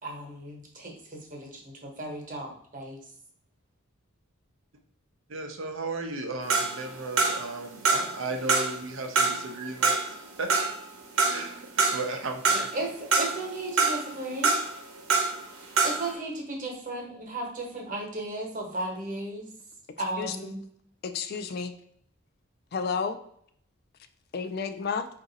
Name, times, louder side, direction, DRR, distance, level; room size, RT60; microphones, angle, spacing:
voice 1, 0.0-3.0 12.5-14.6 15.8-19.5 20.0-20.6, right 2 dB, 40° right, 1 dB, 1.1 m, -35 dB
voice 2, 5.3-10.0 10.4-10.5 11.3-12.7, right 3 dB, 65° right, 5 dB, 0.6 m, -35 dB
sound 1, 6.5-7.6 7.8-8.8 9.1-12.1 12.4-13.5 13.8-15.4 15.7-16.1, right 4 dB, 85° right, 0.9 m, -25 dB
voice 3, 21.0-21.7 22.7-23.2 24.3-25.1, left 5 dB, 45° left, 9 dB, 0.3 m, -31 dB
4.8 x 2.6 x 3.9 m, 0.65 s
head